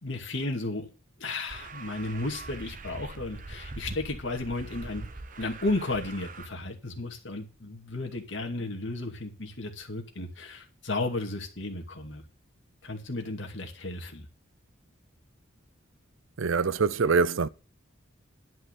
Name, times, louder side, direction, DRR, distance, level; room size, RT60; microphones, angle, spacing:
voice 1, 0.0-0.9 1.2-5.0 5.4-12.2 12.8-14.3, left 2 dB, 60° left, 2.4 m, -34 dB
sound 1, 1.5-6.5, right 2 dB, 40° right, 0.9 m, -42 dB
voice 2, 16.4-17.5, right 4 dB, 70° right, 0.5 m, -24 dB
11.0 x 5.5 x 8.3 m
head